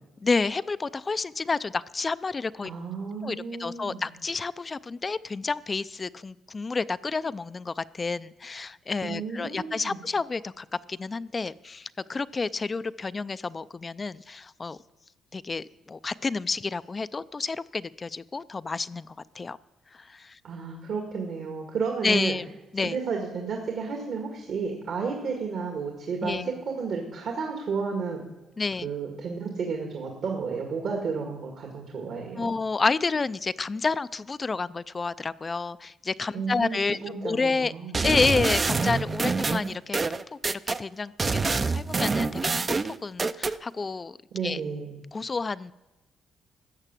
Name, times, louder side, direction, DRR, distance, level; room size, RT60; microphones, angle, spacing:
voice 1, 0.2-2.7 3.2-14.8 15.3-19.6 19.9-20.4 22.0-22.5 22.7-23.0 26.2-26.5 28.6-28.9 32.4-37.7 38.0-40.0 40.3-42.4 42.7-42.8 43.0-44.2 44.4-44.6 45.1-45.7, left 4 dB, 30° left, 16 dB, 0.4 m, -30 dB
voice 2, 2.6-4.1 9.0-10.0 20.4-22.3 22.8-28.2 28.8-32.5 36.3-38.0 44.3-45.0, right 5 dB, 65° right, 1 dB, 2.0 m, -32 dB
sound 1, 37.9-40.8 41.2-43.6, right 4 dB, 30° right, 0.5 m, -26 dB
13.5 x 8.1 x 7.5 m, 1.1 s
cardioid pair, 90°, 0 cm